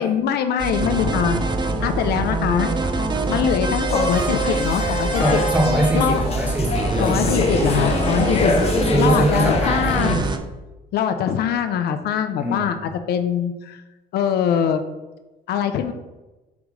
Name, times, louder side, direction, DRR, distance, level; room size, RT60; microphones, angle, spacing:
voice 1, 0.0-1.4 1.8-2.7 3.3-5.4 5.9-6.2 7.0-8.5 9.0-10.2 10.9-13.8 14.1-14.8 15.5-15.9, left 8 dB, 70° left, 8 dB, 0.6 m, -22 dB
sound 1, 0.6-10.4, right 3 dB, 25° right, 0.7 m, -24 dB
sound 2, 3.9-10.2, left 4 dB, 35° left, 0.8 m, -25 dB
voice 2, 5.2-6.8 7.1-7.3 8.9-10.0 12.4-12.7, right 1 dB, 10° right, 0 dB, 1.7 m, -22 dB
8.4 x 3.1 x 5.2 m, 1.1 s
cardioid pair, 110°, 17 cm